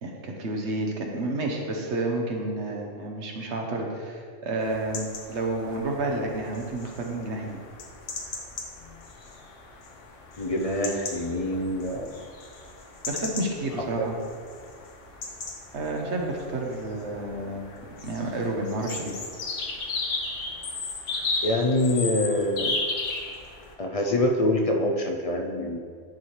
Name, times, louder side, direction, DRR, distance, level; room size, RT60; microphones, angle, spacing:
voice 1, 0.0-7.6 13.1-14.1 15.7-19.2, right 2 dB, 70° right, 1 dB, 1.2 m, -30 dB
sound 1, 4.6-23.7, left 3 dB, 90° left, 1.2 m, -36 dB
voice 2, 10.4-12.1 14.0-14.1 21.4-22.7 23.8-25.8, left 1 dB, 50° left, 2 dB, 0.4 m, -25 dB
10.0 x 4.3 x 3.2 m, 2.1 s
omnidirectional pair, 1.2 m